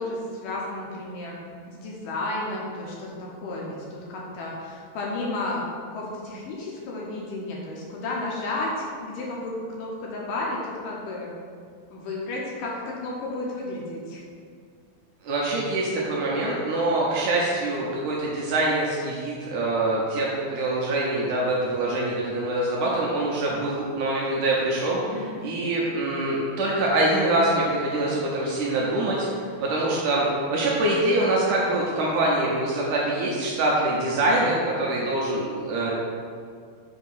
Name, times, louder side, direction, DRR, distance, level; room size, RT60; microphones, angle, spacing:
voice 1, 0.0-1.4 1.7-5.6 5.9-8.7 9.0-11.3 11.9-14.2 25.0-25.4, left 2 dB, 75° left, -3 dB, 2.2 m, -32 dB
voice 2, 15.2-29.3 29.6-35.9, right 2 dB, 75° right, -4 dB, 2.0 m, -24 dB
7.2 x 2.9 x 5.4 m, 2.1 s
omnidirectional pair, 4.2 m